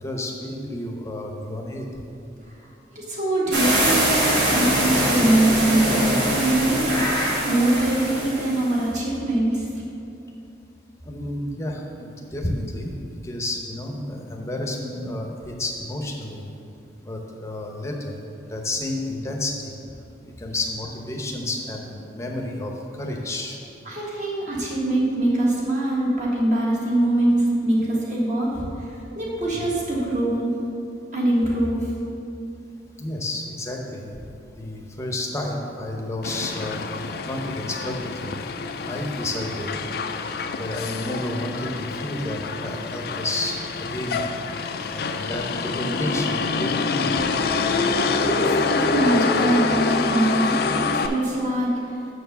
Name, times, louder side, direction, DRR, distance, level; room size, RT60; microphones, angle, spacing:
voice 1, 0.0-1.9 11.1-16.4 17.0-18.2 18.5-19.7 20.2-23.6 29.5-29.6 33.0-34.1 34.5-38.4 38.8-39.8 40.6-44.2 44.9-47.2, left 1 dB, 15° left, 1 dB, 0.7 m, -31 dB
voice 2, 2.9-9.6 23.8-30.6 31.1-31.9 47.7-50.6 50.8-52.0, right 1 dB, 40° right, -5 dB, 1.6 m, -23 dB
sound 1, 3.5-8.7, right 1 dB, 80° right, 1.8 m, -23 dB
Motor vehicle (road), 36.2-51.1, left 4 dB, 55° left, 0.4 m, -26 dB
6.5 x 4.6 x 6.7 m, 2.7 s
head